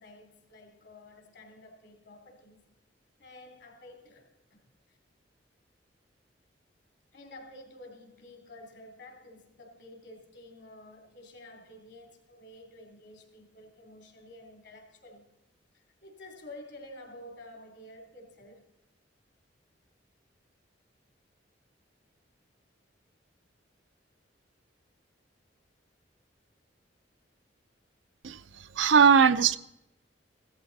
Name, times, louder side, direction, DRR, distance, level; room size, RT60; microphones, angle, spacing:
voice 1, 0.0-2.6 3.2-4.6 7.1-15.2 15.7-18.6, left 1 dB, 65° left, 3.1 m, -50 dB
voice 2, 28.8-29.6, right 6 dB, 80° right, 0.6 m, -19 dB
15.5 x 13.5 x 4.1 m
head